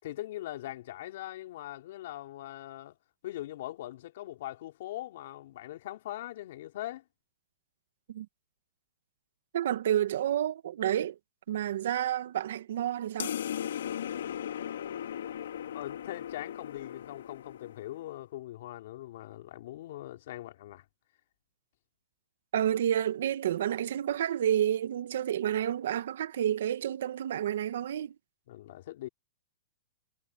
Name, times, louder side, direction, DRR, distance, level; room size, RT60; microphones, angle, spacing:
voice 1, 0.0-3.0 3.2-7.0 15.7-20.8 28.5-29.1, left 14 dB, 60° left, 3.7 m, -41 dB
voice 2, 9.5-11.2 11.5-13.3 22.5-28.1, right 10 dB, 70° right, 1.7 m, -30 dB
sound 1, 13.2-18.1, left 10 dB, 80° left, 4.1 m, -37 dB
hypercardioid pair, 150°, 0 cm